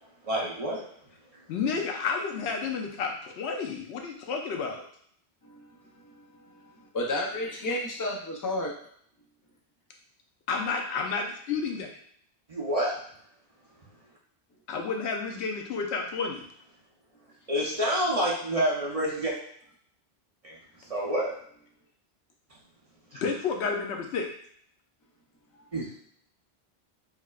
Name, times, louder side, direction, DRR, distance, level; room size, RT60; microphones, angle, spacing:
voice 1, 0.2-0.8 12.5-12.9 17.5-19.3 20.4-20.5 20.9-21.3 25.7-26.0, equal, 40° right, -5 dB, 0.7 m, -27 dB
voice 2, 1.5-4.8 10.5-11.9 14.7-16.4 23.2-24.3, left 5 dB, 80° left, 3 dB, 0.9 m, -31 dB
voice 3, 6.8-8.7, left 1 dB, 25° left, -1 dB, 0.4 m, -31 dB
4.5 x 2.1 x 2.3 m, 0.63 s
omnidirectional pair, 1.1 m